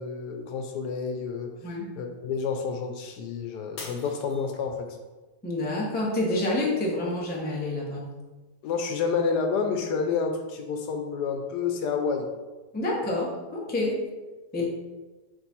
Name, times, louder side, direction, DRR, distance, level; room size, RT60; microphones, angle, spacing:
voice 1, 0.0-1.5 2.0-5.0 8.6-12.3 14.6-14.7, left 5 dB, 85° left, 4 dB, 1.2 m, -29 dB
Shatter, 3.8-5.0 5.6-6.0 6.6-6.7, left 3 dB, 65° left, 1.3 m, -43 dB
voice 2, 5.4-8.1 12.7-14.0 14.5-14.7, left 2 dB, 15° left, -3 dB, 0.4 m, -28 dB
3.6 x 3.1 x 4.1 m, 1.2 s
omnidirectional pair, 1.7 m